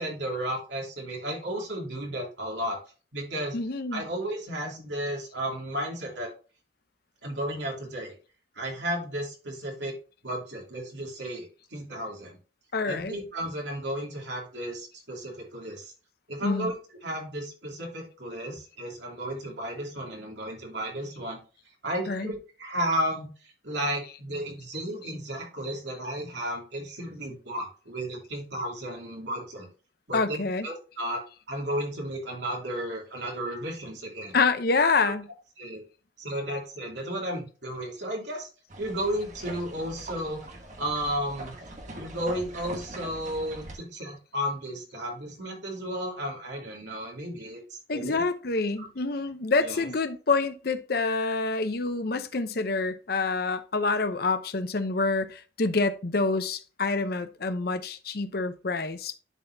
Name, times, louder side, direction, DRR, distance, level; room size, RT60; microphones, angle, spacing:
voice 1, 0.0-2.8 3.1-3.6 3.9-6.3 7.2-8.1 8.5-9.9 10.2-12.4 12.9-15.9 16.3-16.7 17.0-21.4 21.8-29.7 30.1-31.2 31.5-34.4 35.0-35.1 35.6-35.8 36.2-38.5 38.8-40.4 40.8-41.5 41.9-48.2 49.6-49.9, right 1 dB, 70° right, 2.7 m, -33 dB
voice 2, 3.5-4.1 12.7-13.2 16.4-16.7 22.1-22.3 30.1-30.7 34.3-35.3 47.9-59.2, left 3 dB, 55° left, 0.7 m, -27 dB
sound 1, 38.7-43.7, right 2 dB, 40° right, 1.4 m, -42 dB
11.0 x 4.2 x 2.7 m
head